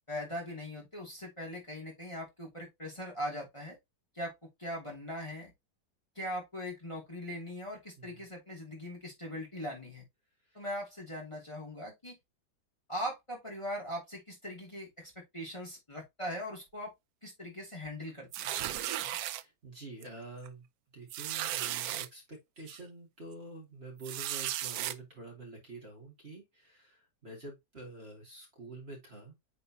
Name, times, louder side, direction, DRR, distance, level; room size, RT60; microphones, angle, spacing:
voice 1, 0.1-3.8 4.1-4.3 4.6-5.5 6.1-10.0 10.5-12.2 12.9-16.9 17.2-18.6 19.0-19.2, equal, 15° left, 2.7 m, -40 dB
sound 1, 18.3-19.4 20.0-20.2 20.5-20.6 21.1-22.1 22.7-22.8 24.0-24.9, right 13 dB, 70° right, 1.0 m, -35 dB
voice 2, 19.0-20.7 20.9-29.3, right 2 dB, 35° right, 2.8 m, -48 dB
8.8 x 4.3 x 2.8 m
omnidirectional pair, 1.8 m